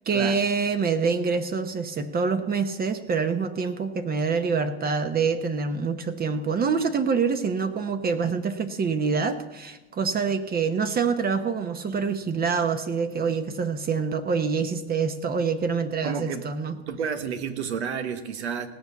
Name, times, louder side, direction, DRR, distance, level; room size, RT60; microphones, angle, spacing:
voice 1, 0.1-16.8, right 5 dB, 30° right, 9 dB, 0.9 m, -26 dB
voice 2, 16.0-16.5 16.9-18.7, right 7 dB, 85° right, 10 dB, 1.3 m, -30 dB
17.5 x 5.8 x 8.2 m, 1.1 s
hypercardioid pair, 90°, 32 cm